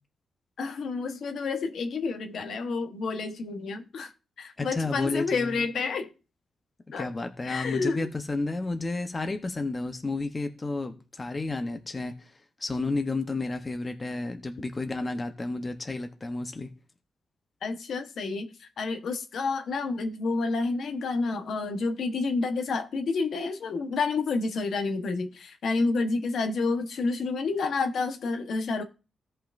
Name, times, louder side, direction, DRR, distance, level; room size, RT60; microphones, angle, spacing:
voice 1, 0.6-4.1 4.4-6.1 6.9-7.1 7.4-8.1 17.6-28.8, left 4 dB, 65° left, 1.1 m, -29 dB
voice 2, 4.6-5.7 7.0-16.7, left 3 dB, 25° left, 0.9 m, -31 dB
16.5 x 5.6 x 2.6 m
wide cardioid pair, 145°, 0 cm